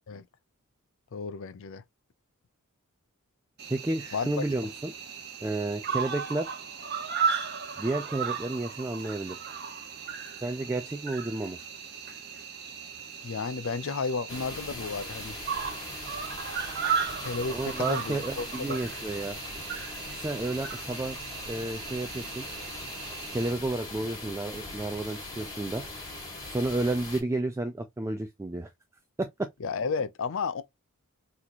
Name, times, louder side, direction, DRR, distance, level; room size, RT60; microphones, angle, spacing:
voice 1, 1.1-1.8 4.1-4.3 13.2-15.4 17.2-18.9 29.6-30.6, left 5 dB, 60° left, 0.5 m, -33 dB
Cricket, 3.6-23.5, right 6 dB, 50° right, 0.8 m, -36 dB
voice 2, 3.7-4.9 5.4-6.5 7.8-9.4 10.4-11.6 17.5-19.4 20.1-21.2 21.5-22.5 23.3-25.8 26.5-28.7 29.2-29.5, right 2 dB, 15° right, 0.3 m, -31 dB
sound 1, 14.3-27.2, left 2 dB, 15° left, 1.9 m, -41 dB
4.1 x 3.0 x 2.5 m
head